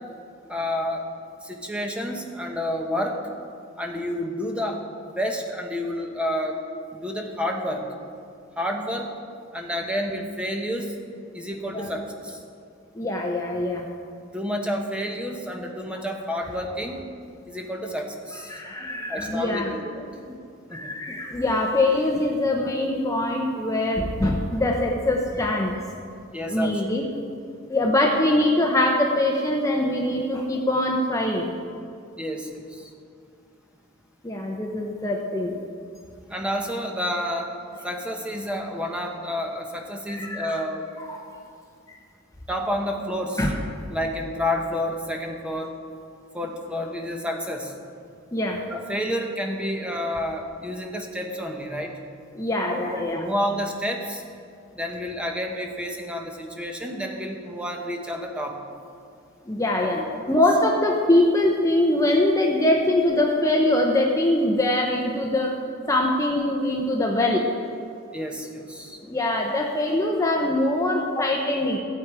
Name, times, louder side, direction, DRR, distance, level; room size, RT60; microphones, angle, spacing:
voice 1, 0.5-1.0 1.4-3.2 3.8-4.8 5.2-6.6 6.9-7.8 8.6-9.1 9.5-10.9 11.3-12.4 14.3-17.0 17.5-18.6 19.1-20.1 20.7-20.9 26.3-26.8 32.2-32.8 36.3-37.5 37.8-40.8 42.5-43.5 43.9-45.7 46.3-47.7 48.7-51.9 53.0-54.2 54.7-58.6 68.1-69.0, equal, 5° right, 2 dB, 1.0 m, -29 dB
voice 2, 12.9-13.9 18.5-19.7 20.2-20.4 20.7-25.7 26.5-27.1 27.7-31.5 34.2-35.6 40.1-40.6 41.0-41.3 41.9-42.0 43.4-43.5 48.3-48.6 52.3-53.2 59.4-60.0 60.3-65.6 65.9-67.5 69.0-71.8, left 1 dB, 15° left, 0 dB, 0.8 m, -23 dB
15.0 x 8.0 x 4.8 m, 2.4 s
head